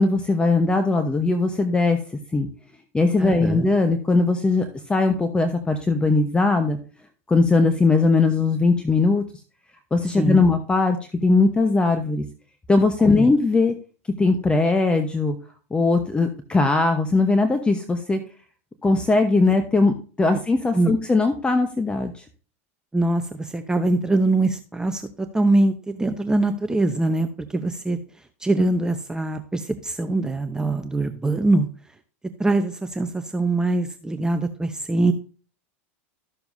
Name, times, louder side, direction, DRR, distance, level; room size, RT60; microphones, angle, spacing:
voice 1, 0.0-2.0 2.3-2.5 2.9-6.8 7.3-9.2 9.9-11.0 11.2-12.2 12.7-13.7 14.2-15.4 15.7-18.2 18.8-22.2, left 3 dB, 15° left, 7 dB, 1.0 m, -20 dB
voice 2, 3.2-3.7 10.2-10.5 13.0-13.3 20.7-20.9 22.9-28.0 28.4-31.7 32.4-35.1, right 2 dB, 10° right, 8 dB, 0.7 m, -23 dB
13.0 x 6.9 x 2.6 m, 0.38 s
hypercardioid pair, 95°, 7 cm